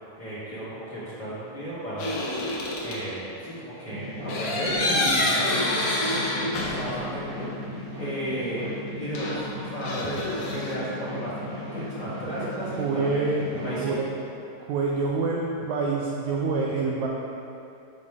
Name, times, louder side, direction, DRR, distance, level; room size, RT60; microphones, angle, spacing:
voice 1, 0.2-5.6 6.4-7.5 8.0-8.7 8.9-13.2 13.5-13.9, right 1 dB, 35° left, -11 dB, 2.2 m, -34 dB
sound 1, 2.0-3.0 4.3-7.1 7.4-7.5 9.1-10.8, left 1 dB, 65° left, 2.6 m, -27 dB
sound 2, 3.9-13.8, left 1 dB, 15° right, 1.0 m, -36 dB
voice 2, 12.8-13.4 13.8-14.1 14.6-17.1, right 4 dB, 80° right, -2 dB, 1.7 m, -26 dB
7.4 x 7.1 x 4.8 m, 2.8 s
omnidirectional pair, 4.0 m